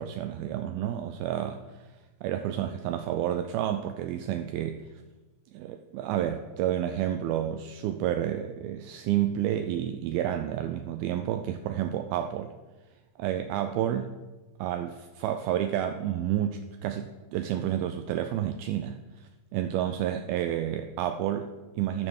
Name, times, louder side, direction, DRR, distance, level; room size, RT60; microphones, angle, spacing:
voice 1, 0.0-1.6 2.2-4.8 5.5-12.5 13.2-14.1 14.6-22.1, right 11 dB, 80° right, 7 dB, 2.3 m, -30 dB
13.0 x 4.9 x 6.4 m, 1.2 s
omnidirectional pair, 4.4 m